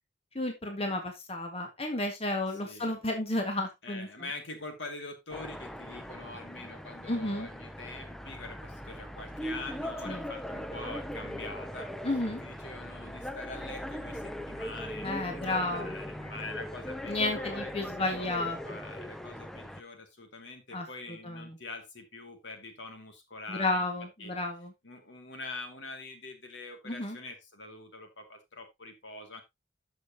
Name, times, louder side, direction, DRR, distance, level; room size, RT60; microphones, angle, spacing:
voice 1, 0.4-4.1 7.1-7.5 10.1-10.2 12.0-12.4 15.0-15.9 17.1-18.6 20.7-20.9 21.2-21.6 23.5-24.7 26.9-27.2, left 2 dB, 30° left, 4 dB, 1.8 m, -32 dB
voice 2, 2.5-3.2 3.8-11.9 12.4-23.9 24.2-24.3 24.8-29.4, left 3 dB, 70° left, 5 dB, 2.5 m, -44 dB
sound 1, 5.3-19.8, equal, ahead, 0.6 m, -40 dB
13.0 x 6.5 x 2.9 m, 0.20 s
head